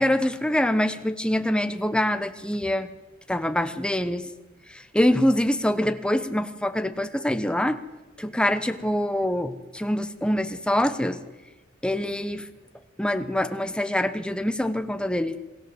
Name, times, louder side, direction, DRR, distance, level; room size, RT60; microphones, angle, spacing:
voice 1, 0.0-2.9 3.3-4.3 4.7-7.8 8.2-11.2 11.8-12.5 13.0-15.4, left 1 dB, 5° left, 10 dB, 1.0 m, -25 dB
27.0 x 17.5 x 7.9 m, 1.1 s
head